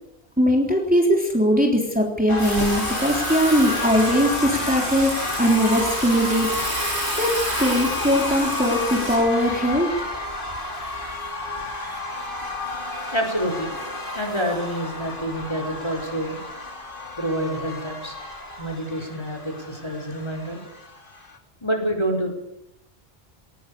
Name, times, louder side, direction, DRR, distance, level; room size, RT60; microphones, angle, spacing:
voice 1, 0.4-5.1 5.4-6.5 7.2-7.3 7.6-9.9, equal, 10° right, 0 dB, 3.5 m, -20 dB
sound 1, 2.3-21.4, left 2 dB, 55° left, 3.2 m, -31 dB
Water / Water tap faucet / Sink (filling or washing), 2.4-9.2, right 1 dB, 85° right, 8.6 m, -30 dB
voice 2, 13.1-13.7 14.1-16.4 17.2-18.1 18.6-20.6 21.6-22.3, equal, 25° left, 3 dB, 4.6 m, -27 dB
20.5 x 19.5 x 7.0 m, 0.79 s
omnidirectional pair, 1.1 m